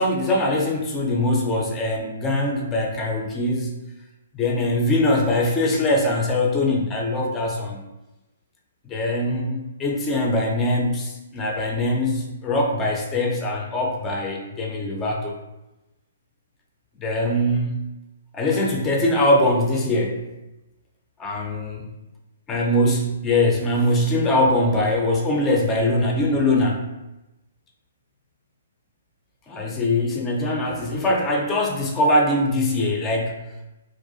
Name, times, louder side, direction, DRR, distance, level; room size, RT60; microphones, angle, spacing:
voice 1, 0.0-3.8 4.3-7.8 8.9-15.4 17.0-17.8 18.3-20.2 21.2-21.8 22.5-26.9 29.5-33.4, left 1 dB, 20° left, 0 dB, 0.4 m, -22 dB
2.3 x 2.1 x 2.5 m, 0.98 s
figure-of-eight pair, 125°, 0 cm